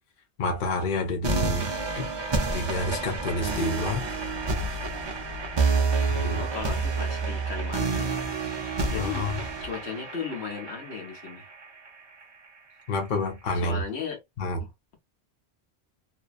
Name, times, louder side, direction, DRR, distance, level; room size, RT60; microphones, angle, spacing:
voice 1, 0.4-1.7 2.0-2.1 2.5-4.1 6.1-6.4 8.9-9.4 12.9-13.8 14.4-14.6, left 2 dB, 50° left, 0.8 m, -29 dB
sound 1, 1.2-12.2, right 4 dB, 35° right, 0.4 m, -29 dB
voice 2, 5.7-8.2 8.9-9.3 9.6-11.5 13.5-14.2 14.6-14.7, left 6 dB, 70° left, 1.2 m, -36 dB
2.7 x 2.1 x 2.3 m
omnidirectional pair, 1.1 m